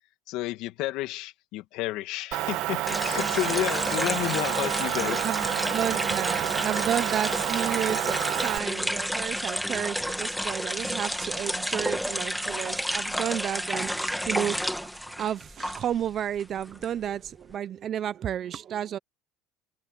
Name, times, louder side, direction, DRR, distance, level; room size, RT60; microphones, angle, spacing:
voice 1, 0.3-5.4, left 17 dB, 65° left, 2.0 m, -31 dB
Motor vehicle (road) / Engine, 2.3-8.6, right 16 dB, 60° right, 1.3 m, -29 dB
sound 1, 2.9-16.0 16.4-17.5, equal, ahead, 2.0 m, -31 dB
voice 2, 5.2-14.9 15.2-19.0, right 10 dB, 40° right, 0.6 m, -32 dB
cardioid pair, 135°, 0 cm